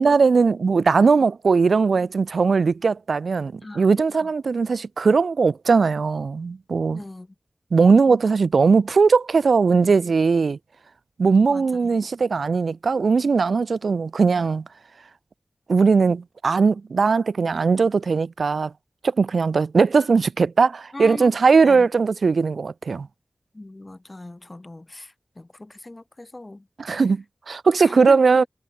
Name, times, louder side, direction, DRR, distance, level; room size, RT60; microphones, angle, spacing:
voice 1, 0.0-7.0 7.7-10.6 11.2-14.6 15.7-18.7 19.0-23.1 26.8-28.4, right 4 dB, 85° right, 0.4 m, -19 dB
voice 2, 3.6-4.3 6.9-7.3 11.5-12.0 20.9-21.3 21.6-21.9 23.5-27.0 27.8-28.5, left 2 dB, 35° left, 4.5 m, -39 dB
wide cardioid pair, 50°, 0 cm